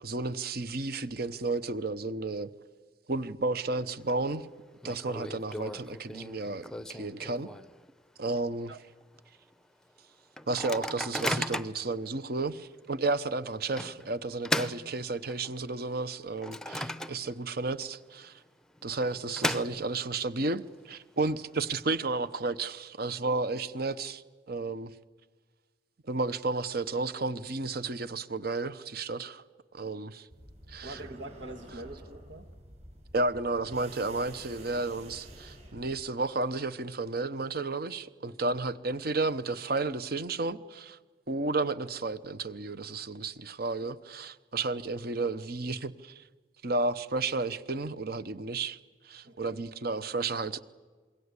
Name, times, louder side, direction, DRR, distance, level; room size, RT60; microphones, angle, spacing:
voice 1, 0.0-2.5 3.1-4.5 4.8-7.5 8.2-8.7 10.5-18.4 18.8-24.2 24.5-24.9 26.1-29.4 29.7-30.3 30.7-31.0 33.1-41.0 41.3-46.2 46.6-48.8 49.0-50.6, right 3 dB, 55° right, 14 dB, 1.0 m, -32 dB
Microwave oven, 3.6-4.1 4.4-4.5 4.8-7.9 8.3-8.4 8.7-9.0 9.5-9.6 10.4-11.9 12.5-12.6 13.8-15.6 16.0-17.5 17.8-17.9 18.8-20.2, left 1 dB, 5° left, 0.7 m, -36 dB
sound 1, 30.3-36.1, right 1 dB, 40° right, 7.8 m, -49 dB
voice 2, 30.8-32.5 49.2-49.6, right 1 dB, 85° right, 8 dB, 1.8 m, -44 dB
27.0 x 22.5 x 8.3 m, 1.4 s
head